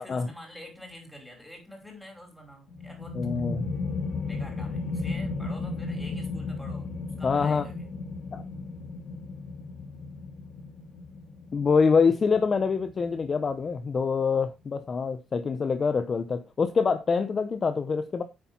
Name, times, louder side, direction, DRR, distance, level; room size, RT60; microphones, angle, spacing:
voice 1, 0.0-3.2 4.2-6.9 7.2-7.9, equal, 5° left, 5.6 m, -46 dB
sound 1, 2.7-14.1, left 3 dB, 50° left, 2.3 m, -35 dB
voice 2, 3.1-3.7 7.2-7.7 8.3-8.4 11.5-18.2, left 5 dB, 30° left, 0.9 m, -25 dB
9.8 x 8.4 x 4.4 m
cardioid pair, 145°, 0 cm